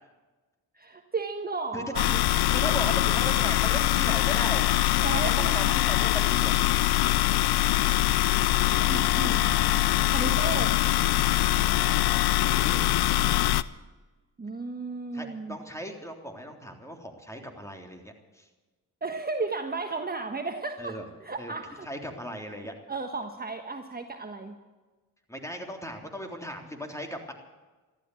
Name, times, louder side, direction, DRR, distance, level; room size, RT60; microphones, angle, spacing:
voice 1, 0.7-2.2 5.0-5.7 8.8-10.8 11.5-11.7 14.4-15.6 19.0-21.9 22.9-24.6, right 3 dB, 25° right, 5 dB, 1.4 m, -34 dB
sound 1, 2.0-13.6, left 15 dB, 85° left, 0.6 m, -23 dB
voice 2, 2.1-4.7 5.1-6.5 11.8-13.0 15.1-18.4 20.8-21.1 21.4-21.5 21.8-22.7 25.3-27.3, equal, 10° left, 3 dB, 3.4 m, -37 dB
14.5 x 13.0 x 7.8 m, 1.2 s
cardioid pair, 70°, 37 cm